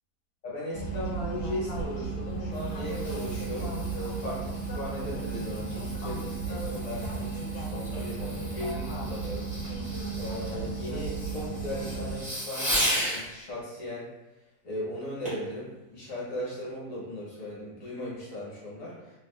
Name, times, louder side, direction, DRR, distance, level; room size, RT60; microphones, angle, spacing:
voice 1, 0.4-9.5 10.2-14.1 14.6-18.9, left 1 dB, 55° left, -7 dB, 1.3 m, -37 dB
sound 1, 0.7-12.2, right 3 dB, 75° left, 1.1 m, -34 dB
Fireworks, 2.2-13.2 15.2-15.5 16.1-16.2, equal, 5° right, 0.6 m, -36 dB
2.8 x 2.3 x 2.2 m, 1.0 s
omnidirectional pair, 1.7 m